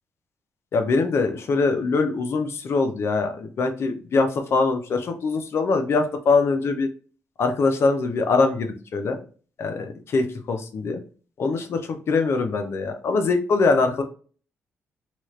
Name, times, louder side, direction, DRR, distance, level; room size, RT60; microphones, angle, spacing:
voice 1, 0.7-6.9 7.4-9.2 9.6-11.0 11.4-11.8 12.1-14.0, left 3 dB, 55° left, 6 dB, 0.6 m, -23 dB
2.9 x 2.4 x 3.1 m, 0.39 s
cardioid pair, 95°, 5 cm